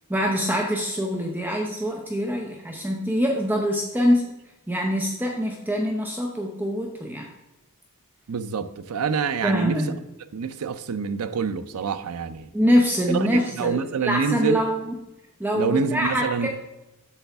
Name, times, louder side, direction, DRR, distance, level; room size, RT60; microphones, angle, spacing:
voice 1, 0.1-4.3 4.7-7.3 9.4-9.9 12.5-14.9 15.4-16.5, equal, 10° right, 0.7 m, -24 dB
voice 2, 8.3-9.8 10.3-12.5 13.1-14.6 15.5-16.5, right 6 dB, 85° right, 0.5 m, -26 dB
8.2 x 6.9 x 3.5 m
head